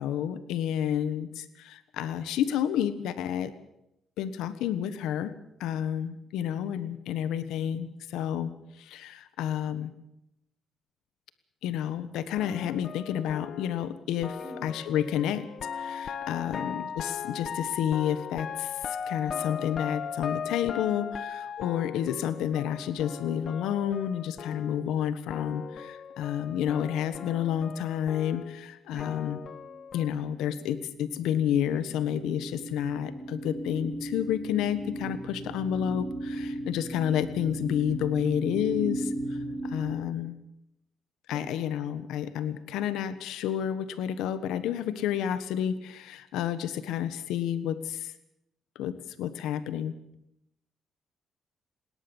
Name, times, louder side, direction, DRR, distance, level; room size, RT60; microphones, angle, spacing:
voice 1, 0.0-3.5 4.2-5.3 5.6-8.5 8.8-9.9 11.6-15.5 15.7-29.4 29.9-39.4 39.6-40.3 41.3-48.1 48.7-49.9, left 10 dB, 90° left, 13 dB, 1.3 m, -30 dB
sound 1, 12.3-25.0 25.3-30.1, left 7 dB, 55° left, 1.2 m, -38 dB
voice 2, 14.4-14.7 16.5-16.7 28.9-29.2 41.3-41.5, right 1 dB, 10° right, 3 dB, 6.0 m, -46 dB
sound 2, 30.0-30.8 31.1-39.9, right 1 dB, 90° right, 4.9 m, -37 dB
21.0 x 18.0 x 7.2 m, 0.84 s
cardioid pair, 90°, 0 cm